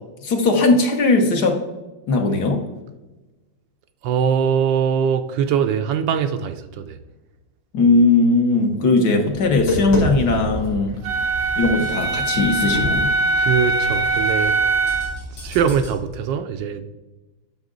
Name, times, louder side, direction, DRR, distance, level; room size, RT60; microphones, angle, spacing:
voice 1, 0.2-1.6 2.1-2.6 7.7-10.9 11.6-13.1, left 3 dB, 55° left, 1.5 m, -18 dB
voice 2, 4.0-7.0 13.4-14.6 15.3-16.8, right 7 dB, 75° right, 1.2 m, -22 dB
Tap, 9.3-16.0, equal, 85° left, 3.8 m, -30 dB
Wind instrument woodwind instrument, 11.0-15.2, right 2 dB, 55° right, 0.9 m, -21 dB
11.0 x 6.0 x 3.8 m
omnidirectional pair, 2.2 m